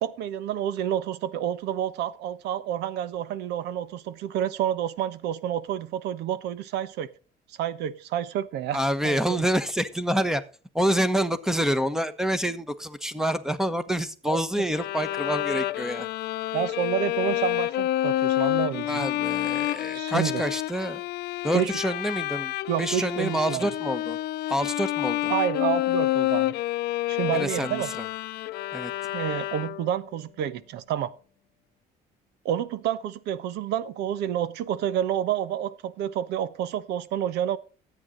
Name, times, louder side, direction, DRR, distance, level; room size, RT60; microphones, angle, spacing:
voice 1, 0.0-7.1 7.5-9.4 14.3-14.6 16.5-19.1 19.9-20.4 21.5-21.7 22.7-23.7 25.3-26.5 27.1-27.9 29.1-31.1 32.4-37.6, right 10 dB, 85° right, 15 dB, 1.1 m, -29 dB
voice 2, 8.7-10.4 10.7-16.1 18.8-21.0 21.4-22.5 22.8-24.2 24.5-25.3 27.3-27.8 28.7-28.9, equal, 5° right, 12 dB, 1.2 m, -27 dB
Bowed string instrument, 14.7-30.0, left 15 dB, 70° left, 0.6 m, -28 dB
13.5 x 9.0 x 3.9 m, 0.38 s
cardioid pair, 110°, 17 cm